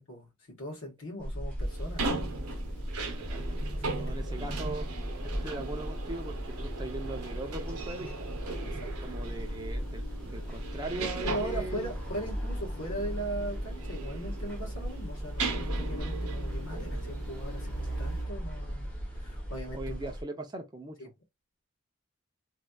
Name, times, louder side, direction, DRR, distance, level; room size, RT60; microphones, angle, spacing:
voice 1, 0.0-2.1 3.7-4.3 8.6-9.1 10.9-20.1 21.0-21.1, right 1 dB, 60° left, 1.4 m, -40 dB
sound 1, 1.2-20.2, equal, 5° left, 0.9 m, -36 dB
sound 2, 1.6-18.3, right 3 dB, 85° right, 0.8 m, -39 dB
voice 2, 3.0-3.6 3.9-4.9 5.2-8.3 9.0-11.9 19.7-21.0, right 2 dB, 20° right, 0.5 m, -40 dB
3.2 x 2.7 x 2.3 m
head